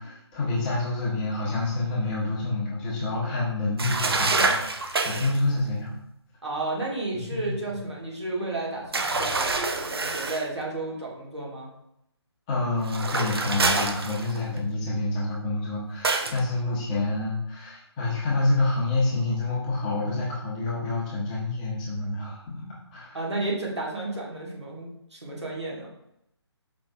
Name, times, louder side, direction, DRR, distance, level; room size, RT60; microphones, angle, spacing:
voice 1, 0.0-5.9 7.3-7.5 12.5-22.6 22.9-23.2, left 2 dB, 15° left, -6 dB, 0.8 m, -28 dB
sound 1, 3.8-5.4 8.9-10.5 12.8-14.6 16.0-16.4, right 3 dB, 60° right, 0.5 m, -26 dB
voice 2, 6.4-11.7 23.1-25.9, right 2 dB, 75° right, -3 dB, 1.5 m, -32 dB
5.1 x 3.2 x 2.3 m, 0.77 s
figure-of-eight pair, 145°, 15 cm